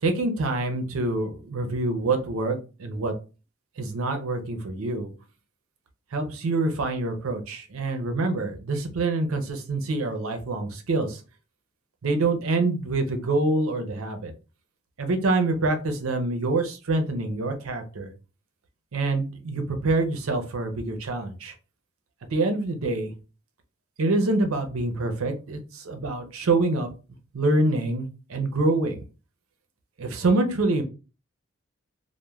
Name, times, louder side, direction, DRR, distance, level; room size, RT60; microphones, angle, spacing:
voice 1, 0.0-3.1 3.8-5.1 6.1-11.2 12.0-14.3 15.0-18.1 18.9-21.5 22.3-23.1 24.0-26.9 27.3-29.0 30.0-30.8, right 2 dB, 85° right, 6 dB, 0.5 m, -26 dB
2.2 x 2.1 x 3.0 m, 0.33 s
head